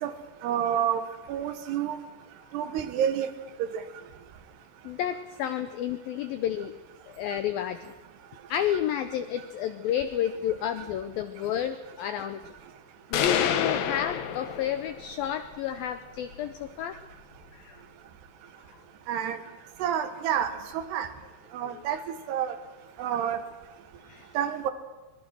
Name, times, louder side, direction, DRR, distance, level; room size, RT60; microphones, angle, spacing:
voice 1, 0.4-2.0 2.5-3.3 3.7-3.8 19.1-19.4 19.8-21.1 21.5-22.0 22.3-22.6 23.0-23.4 24.3-24.7, right 9 dB, 70° right, 9 dB, 3.2 m, -29 dB
voice 2, 4.8-6.7 7.1-7.9 8.5-12.6 13.1-17.0 17.5-17.8 21.7-21.8 24.0-24.3, left 10 dB, 85° left, 11 dB, 2.1 m, -31 dB
sound 1, 13.1-15.1, left 8 dB, 65° left, 2.5 m, -28 dB
23.0 x 21.0 x 6.3 m, 1.2 s
omnidirectional pair, 5.2 m